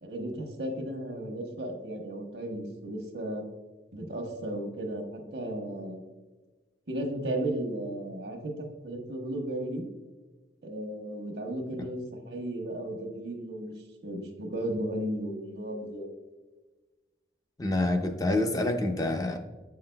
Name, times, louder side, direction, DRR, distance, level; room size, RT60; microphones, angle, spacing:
voice 1, 0.0-3.4 3.9-6.0 6.9-9.9 10.6-12.0 12.3-13.7 14.0-16.1, right 1 dB, 75° right, 3 dB, 1.1 m, -35 dB
voice 2, 17.6-19.4, left 2 dB, 20° left, 5 dB, 0.5 m, -27 dB
8.3 x 5.7 x 2.2 m, 1.2 s
head